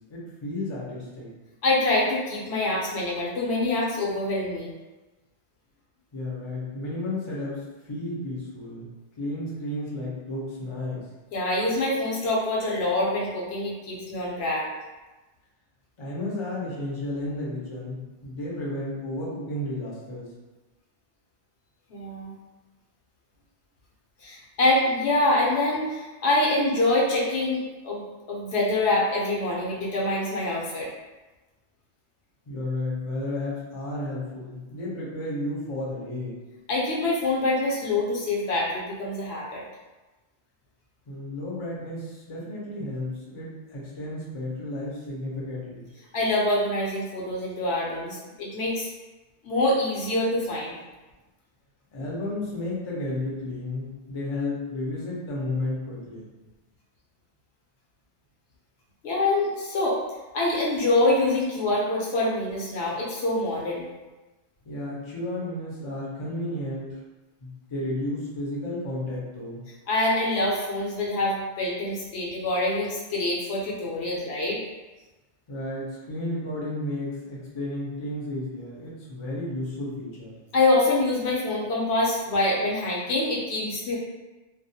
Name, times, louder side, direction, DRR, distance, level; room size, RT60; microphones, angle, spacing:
voice 1, 0.1-1.3 6.1-8.9 9.2-11.0 16.0-20.3 32.5-36.3 41.1-45.8 51.9-56.3 64.6-67.0 67.4-69.6 75.5-80.3, left 1 dB, 35° left, -5 dB, 0.5 m, -32 dB
voice 2, 1.6-4.7 11.3-14.7 21.9-22.3 24.2-30.9 36.7-39.6 46.1-48.9 49.4-50.8 59.0-60.0 60.3-63.9 69.9-74.6 80.5-84.0, left 2 dB, 70° left, -3 dB, 0.8 m, -25 dB
2.3 x 2.0 x 2.6 m, 1.1 s
omnidirectional pair, 1.2 m